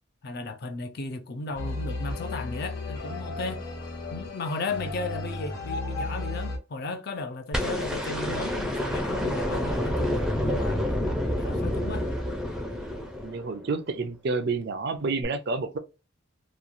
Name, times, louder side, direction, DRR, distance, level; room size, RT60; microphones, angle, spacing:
voice 1, 0.2-3.6 4.1-10.8 11.3-12.1, left 3 dB, 50° left, 0.5 m, -35 dB
sound 1, 1.6-6.6, left 2 dB, 90° left, 1.3 m, -34 dB
sound 2, 7.5-13.7 15.2-15.3, left 1 dB, 5° right, 0.5 m, -28 dB
voice 2, 13.2-15.8, right 3 dB, 55° right, 0.5 m, -29 dB
3.0 x 2.3 x 2.5 m
head